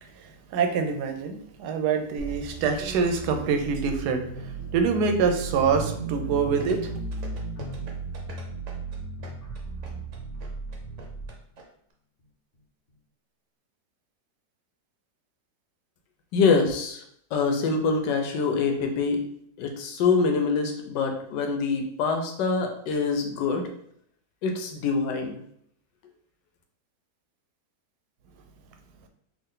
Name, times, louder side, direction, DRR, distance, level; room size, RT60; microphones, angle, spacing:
voice 1, 0.0-6.9, right 5 dB, 75° right, 5 dB, 1.1 m, -26 dB
sound 1, 2.2-11.3, right 3 dB, 50° left, 0.7 m, -36 dB
sound 2, 6.6-11.6 11.9-12.0, right 3 dB, 60° right, 0.8 m, -45 dB
voice 2, 16.3-17.0 17.3-19.2 19.6-23.7 24.4-25.4, left 4 dB, 85° left, 4 dB, 1.3 m, -25 dB
3.6 x 2.5 x 3.7 m, 0.68 s
omnidirectional pair, 1.9 m